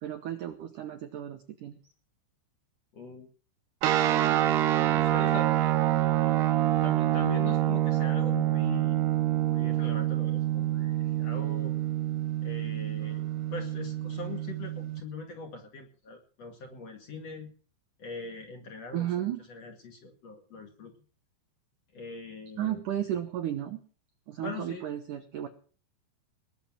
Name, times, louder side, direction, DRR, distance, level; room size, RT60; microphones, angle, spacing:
voice 1, 0.0-1.7 18.9-19.5 22.6-23.8 24.3-25.5, right 11 dB, 85° right, 7 dB, 1.8 m, -33 dB
voice 2, 2.9-3.3 4.1-5.5 6.8-9.1 9.4-11.7 12.4-17.5 18.0-20.9 21.9-22.8 24.4-24.9, left 4 dB, 45° left, 4 dB, 2.6 m, -41 dB
sound 1, 3.8-15.0, right 13 dB, 70° right, 3.0 m, -27 dB
20.0 x 7.5 x 7.5 m, 0.40 s
omnidirectional pair, 5.4 m